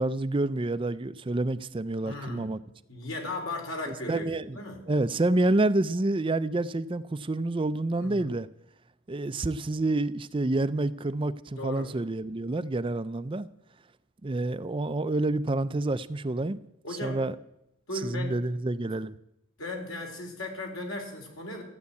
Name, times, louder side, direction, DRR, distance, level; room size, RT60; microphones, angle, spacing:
voice 1, 0.0-2.6 3.9-4.6 4.9-8.5 9.1-13.5 14.2-16.6 17.0-17.4 18.0-19.1, right 2 dB, 25° right, 13 dB, 0.4 m, -28 dB
voice 2, 2.0-2.5 2.9-4.8 8.0-8.3 11.6-11.9 16.8-17.2 17.9-18.4 19.6-21.6, left 2 dB, 80° left, 2 dB, 3.9 m, -36 dB
14.0 x 9.5 x 8.3 m, 0.83 s
head